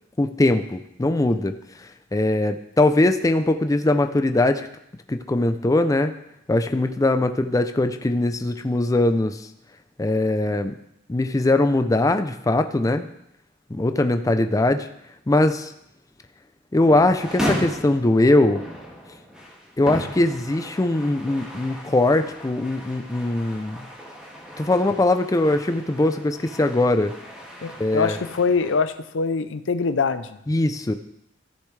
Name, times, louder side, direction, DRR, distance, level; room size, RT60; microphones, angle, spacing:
voice 1, 0.2-1.5 1.8-4.7 5.1-6.1 6.5-9.5 10.0-10.7 11.1-13.1 13.7-14.9 15.3-15.7 16.7-18.6 19.8-23.9 24.6-27.1 27.8-28.2 30.5-30.9, left 2 dB, 20° left, 8 dB, 0.4 m, -21 dB
sound 1, 16.8-28.8, equal, 5° right, 2.2 m, -35 dB
voice 2, 27.6-30.4, left 4 dB, 80° left, 12 dB, 0.6 m, -24 dB
14.5 x 6.8 x 3.2 m, 0.80 s
head